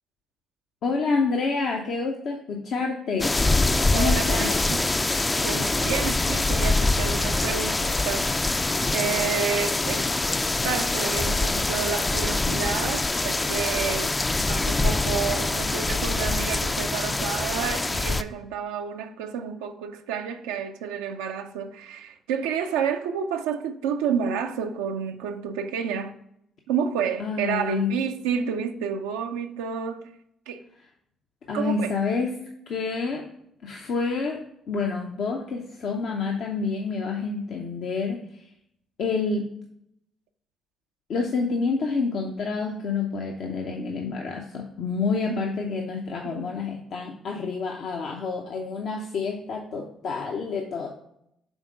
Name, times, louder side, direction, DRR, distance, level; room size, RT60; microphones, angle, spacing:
voice 1, 0.8-3.3 3.9-4.5 27.2-27.9 31.5-32.3 32.7-33.2 33.6-34.4 34.7-38.2 39.0-39.4 41.1-50.9, left 4 dB, 65° left, 0.7 m, -28 dB
sound 1, 3.2-18.2, left 2 dB, 25° left, 0.3 m, -24 dB
voice 2, 3.9-5.0 5.4-10.1 10.6-14.1 14.5-26.2 26.7-30.1 30.5-30.7 31.5-31.9 45.3-45.5 46.2-46.5, right 7 dB, 85° right, 0.4 m, -30 dB
6.3 x 3.6 x 5.0 m
hypercardioid pair, 50°, 0 cm